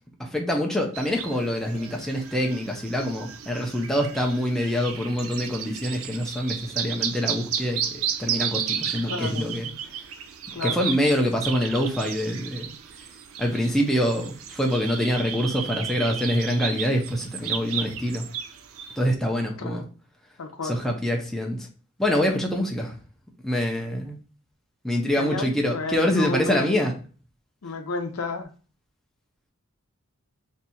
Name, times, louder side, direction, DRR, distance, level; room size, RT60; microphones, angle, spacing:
voice 1, 0.2-9.7 10.6-12.7 13.4-18.2 19.0-19.8 20.6-21.6 22.0-23.0 23.4-24.2 24.8-26.9, equal, ahead, 1 dB, 0.4 m, -25 dB
sound 1, 0.9-19.1, right 8 dB, 65° right, 0.4 m, -33 dB
voice 2, 9.1-9.5 10.5-10.8 19.6-19.8 20.4-20.8 25.2-26.8 27.6-28.5, left 3 dB, 80° left, 6 dB, 0.6 m, -31 dB
2.7 x 2.3 x 4.1 m, 0.37 s
head